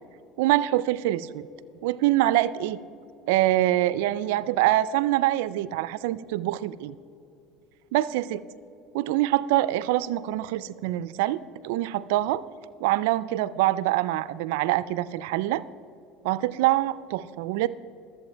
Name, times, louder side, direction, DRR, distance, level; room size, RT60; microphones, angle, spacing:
voice 1, 0.4-1.4 1.8-2.8 3.3-6.9 7.9-8.4 8.9-12.4 12.8-15.6 16.2-17.7, right 15 dB, 85° right, 17 dB, 0.3 m, -25 dB
13.5 x 7.6 x 4.4 m, 2.7 s
supercardioid pair, 105°, 0 cm